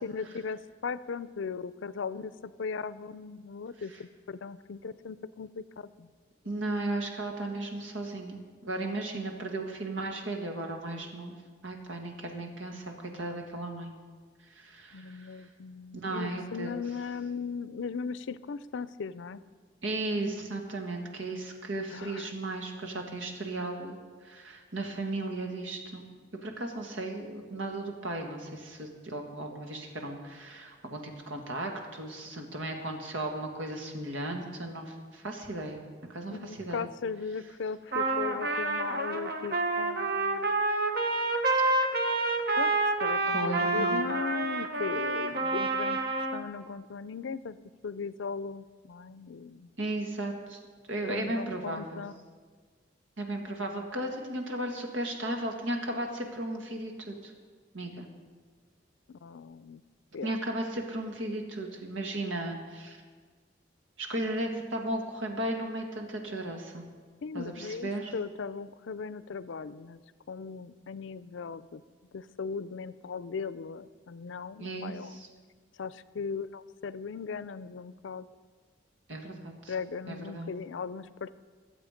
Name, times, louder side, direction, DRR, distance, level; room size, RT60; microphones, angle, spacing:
voice 1, 0.0-6.1 14.9-19.4 21.9-22.3 36.3-40.5 42.6-47.6 47.8-49.7 51.1-52.3 59.1-59.8 60.1-60.4 67.2-70.0 70.3-71.8 72.1-75.2 75.8-78.3 79.7-81.4, left 5 dB, 80° left, 16 dB, 0.5 m, -38 dB
voice 2, 6.4-11.3 11.6-13.9 14.4-15.5 16.0-16.7 19.8-26.1 26.4-35.8 36.1-36.8 43.3-44.0 49.8-50.6 50.9-52.0 53.2-57.3 57.7-58.1 60.2-63.0 64.0-66.8 67.3-68.1 74.6-75.3 79.1-79.7 80.1-80.5, right 2 dB, 90° right, 3 dB, 1.9 m, -35 dB
Trumpet, 37.9-46.4, right 2 dB, 50° right, 0.9 m, -28 dB
22.0 x 7.7 x 5.1 m, 1.5 s
head